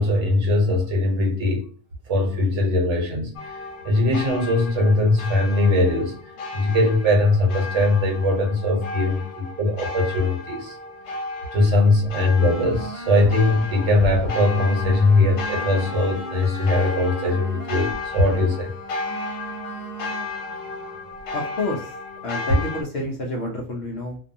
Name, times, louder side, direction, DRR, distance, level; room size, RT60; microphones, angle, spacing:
voice 1, 0.0-1.6 2.1-3.5 3.8-6.1 6.5-10.7 11.5-18.7, left 2 dB, 65° right, 1.1 m, -20 dB
sound 1, 3.4-22.8, left 3 dB, 85° left, 1.1 m, -34 dB
sound 2, 12.4-21.2, right 2 dB, 40° left, 1.1 m, -38 dB
voice 2, 21.3-21.9 22.2-24.2, left 1 dB, 60° left, 0.7 m, -28 dB
2.6 x 2.3 x 2.5 m
omnidirectional pair, 1.5 m